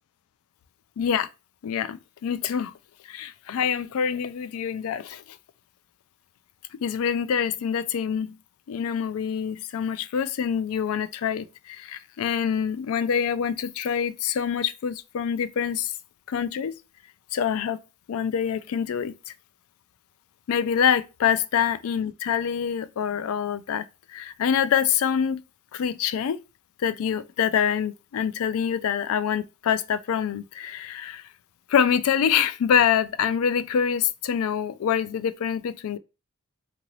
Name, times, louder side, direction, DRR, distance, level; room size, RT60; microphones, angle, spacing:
voice 1, 1.0-1.3 1.6-2.7 3.1-5.4 6.8-8.3 8.7-15.9 16.3-16.7 17.3-17.8 18.1-19.3 20.5-23.9 24.1-25.4 25.7-26.4 26.8-31.2 31.7-36.0, left 8 dB, 90° left, 0.3 m, -25 dB
2.8 x 2.6 x 2.9 m
head